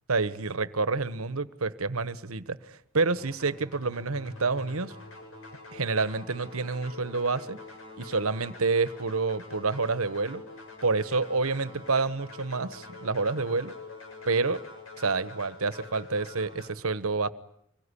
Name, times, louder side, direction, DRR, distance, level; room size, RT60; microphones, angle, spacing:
voice 1, 0.1-4.9 5.7-7.6 8.0-10.4 10.8-13.7 14.3-14.6 15.0-17.3, right 4 dB, 80° right, 14 dB, 1.3 m, -28 dB
sound 1, 3.0-16.7, left 3 dB, 65° left, 7.2 m, -46 dB
25.5 x 22.5 x 10.0 m, 0.72 s
head